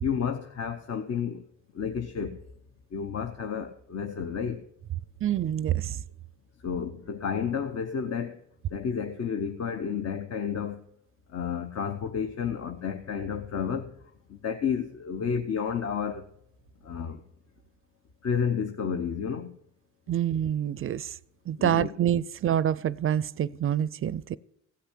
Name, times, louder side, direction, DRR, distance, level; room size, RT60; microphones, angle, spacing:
voice 1, 0.0-1.5 1.7-2.4 2.9-4.6 6.6-8.4 8.7-10.8 11.3-13.9 14.3-16.3 16.8-17.2 18.2-19.5 21.6-21.9, left 7 dB, 55° left, 0.9 m, -31 dB
voice 2, 5.2-6.0 20.1-21.1 21.5-24.4, right 10 dB, 45° right, 0.4 m, -27 dB
16.5 x 5.8 x 8.2 m
cardioid pair, 90°, 30 cm